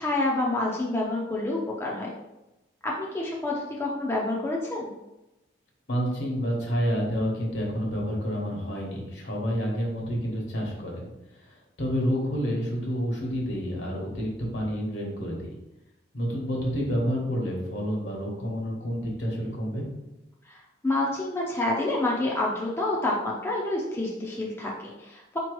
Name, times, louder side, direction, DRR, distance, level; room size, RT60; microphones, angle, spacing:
voice 1, 0.0-2.1 2.8-4.9 20.5-25.4, left 2 dB, 15° left, -3 dB, 0.5 m, -28 dB
voice 2, 5.9-15.6 16.1-19.9, equal, 65° left, -1 dB, 1.2 m, -29 dB
4.3 x 2.9 x 3.1 m, 0.96 s
head